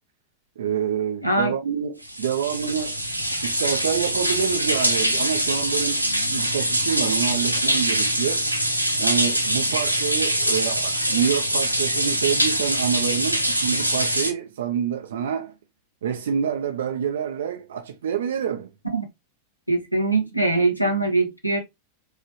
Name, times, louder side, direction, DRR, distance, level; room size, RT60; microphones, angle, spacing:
voice 1, 0.6-3.0 3.4-8.5 9.0-15.5 16.0-18.7, right 8 dB, 60° right, 0.5 m, -27 dB
voice 2, 1.2-1.5 18.9-19.0 19.7-21.6, right 2 dB, 90° left, 1.4 m, -22 dB
sound 1, 2.0-14.3, right 1 dB, 90° right, 0.8 m, -23 dB
4.8 x 3.2 x 3.0 m
figure-of-eight pair, 90°, 0 cm